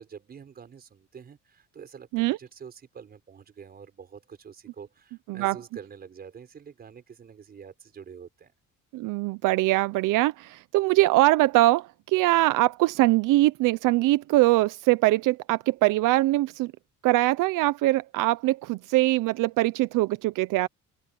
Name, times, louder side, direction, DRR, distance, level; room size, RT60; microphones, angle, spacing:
voice 1, 0.0-8.5, right 7 dB, 30° right, 5.6 m, -46 dB
voice 2, 8.9-16.7 17.0-20.7, right 18 dB, 80° right, 0.7 m, -22 dB
open air
cardioid pair, 175°, 32 cm